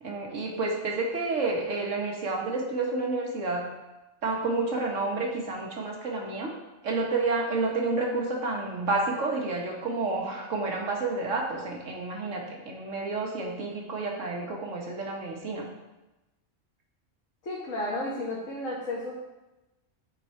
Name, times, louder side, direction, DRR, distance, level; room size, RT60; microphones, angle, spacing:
voice 1, 0.0-3.6 4.2-6.5 6.8-15.7, right 3 dB, 75° right, 0 dB, 1.7 m, -30 dB
voice 2, 17.4-19.1, left 1 dB, 90° left, -5 dB, 1.8 m, -32 dB
9.9 x 4.8 x 4.5 m, 1.0 s
omnidirectional pair, 1.3 m